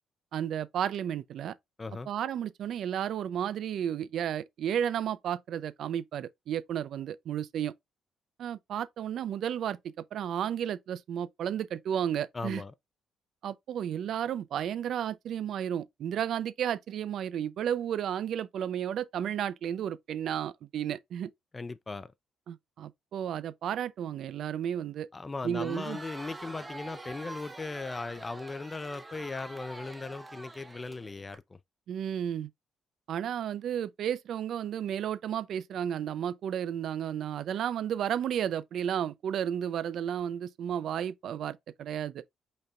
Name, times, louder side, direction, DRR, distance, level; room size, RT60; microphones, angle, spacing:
voice 1, 0.3-1.5 2.1-7.7 8.4-12.6 13.4-21.3 22.5-25.1 25.4-26.0 31.9-32.5 33.1-42.2, right 9 dB, 70° right, 0.4 m, -33 dB
voice 2, 1.8-2.1 12.3-12.7 21.5-22.1 25.1-31.6, left 3 dB, 25° left, 0.4 m, -38 dB
Crowd, 25.4-31.4, right 2 dB, 15° right, 1.0 m, -45 dB
5.4 x 4.1 x 2.4 m
cardioid pair, 90°, 0 cm